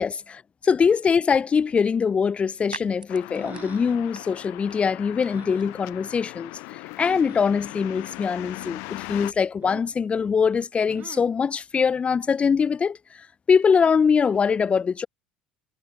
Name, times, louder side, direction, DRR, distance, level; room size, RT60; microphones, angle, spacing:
voice 1, 0.0-6.5 7.0-13.0 13.5-15.0, left 6 dB, 25° left, 1.2 m, -22 dB
sound 1, 1.5-10.2, right 3 dB, 85° right, 5.8 m, -49 dB
sound 2, 3.1-9.3, left 30 dB, 55° left, 0.8 m, -39 dB
sound 3, 3.3-4.1 5.2-5.6 7.0-7.5 9.6-10.0 10.9-11.4, right 9 dB, 40° right, 2.4 m, -44 dB
figure-of-eight pair, 65°, 5 cm